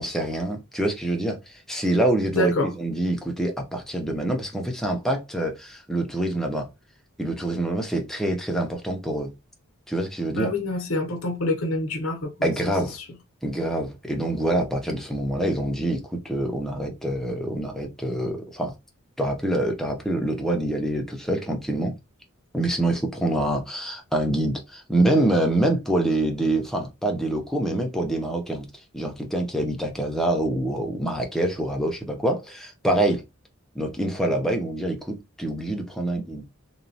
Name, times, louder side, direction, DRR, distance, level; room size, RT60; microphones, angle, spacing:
voice 1, 0.0-6.7 7.2-9.3 9.9-10.5 12.4-13.0 13.4-18.7 19.2-21.9 22.5-28.7 28.9-33.2 33.7-36.4, right 1 dB, ahead, 0.5 m, -26 dB
voice 2, 2.3-2.7 10.4-12.3 13.0-13.1, left 1 dB, 70° left, 0.7 m, -26 dB
3.0 x 2.2 x 2.6 m
head